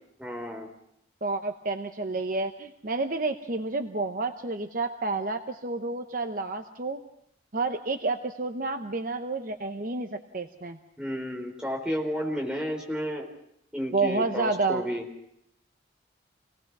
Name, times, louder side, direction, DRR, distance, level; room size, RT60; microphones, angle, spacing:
voice 1, 0.2-0.7 11.0-13.3 13.7-15.1, equal, 5° right, 0 dB, 4.2 m, -32 dB
voice 2, 1.2-7.0 7.5-10.8 13.9-14.8, right 3 dB, 45° right, 6 dB, 0.9 m, -30 dB
27.0 x 18.5 x 6.1 m, 0.75 s
head